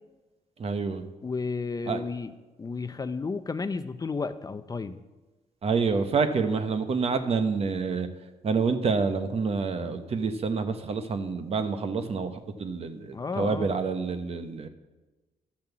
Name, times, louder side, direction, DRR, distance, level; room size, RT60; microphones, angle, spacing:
voice 1, 0.6-1.0 1.9-2.0 5.6-8.1 8.4-14.7, right 4 dB, 50° right, 8 dB, 1.1 m, -28 dB
voice 2, 1.2-2.3 2.6-5.0 13.1-13.7, left 4 dB, 25° left, 11 dB, 0.6 m, -32 dB
12.0 x 7.4 x 7.3 m, 1.2 s
cardioid pair, 100°, 14 cm